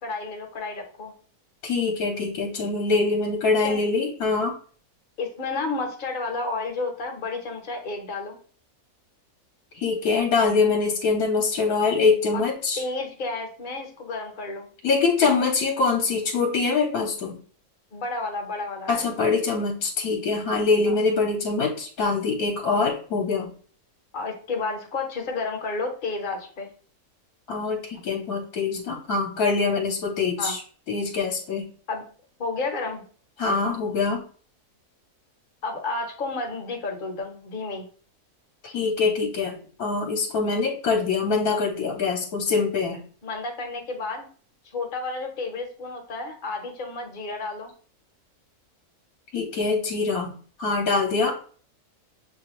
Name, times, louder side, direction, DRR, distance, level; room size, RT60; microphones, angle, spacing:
voice 1, 0.0-1.1 3.6-3.8 5.2-8.4 12.3-12.4 12.8-14.7 17.9-19.1 20.9-21.0 24.1-26.7 30.4-30.5 31.9-32.0 32.4-33.0 35.6-37.9 43.2-44.3 44.7-47.7, left 3 dB, 40° left, 3 dB, 0.8 m, -31 dB
voice 2, 1.6-4.6 9.7-12.8 14.8-17.3 18.9-23.5 27.5-30.6 30.9-31.6 33.4-34.2 38.6-43.0 49.3-50.3 50.6-51.4, left 4 dB, 75° left, 1 dB, 1.2 m, -24 dB
6.9 x 2.3 x 2.9 m, 0.43 s
omnidirectional pair, 1.6 m